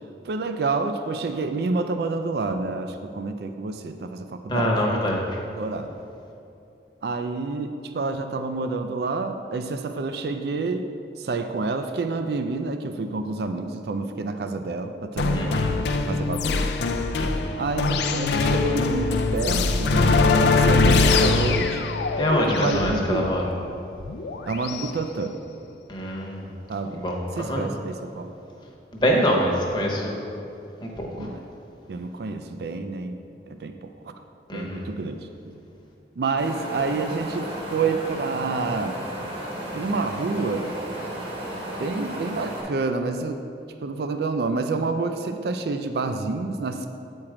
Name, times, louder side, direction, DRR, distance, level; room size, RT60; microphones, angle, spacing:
voice 1, 0.2-5.1 5.6-5.9 7.0-10.9 11.2-15.7 16.1-16.7 17.6-21.9 22.5-23.4 24.5-25.4 26.7-27.0 27.3-28.3 31.2-31.4 31.9-34.1 34.5-35.6 36.2-39.0 39.7-40.7 41.8-43.4 43.8-46.9, right 3 dB, 60° right, 7 dB, 0.4 m, -28 dB
voice 2, 4.5-5.3 15.3-15.7 17.2-17.5 22.2-23.4 25.9-26.5 26.9-27.6 28.9-30.2 31.0-31.3 34.5-34.9, equal, 25° left, -1 dB, 0.9 m, -25 dB
sound 1, 15.2-24.9, left 3 dB, 70° left, 0.4 m, -22 dB
Wind, 36.4-42.6, right 1 dB, 85° right, 1.9 m, -34 dB
8.6 x 4.5 x 4.9 m, 2.7 s
head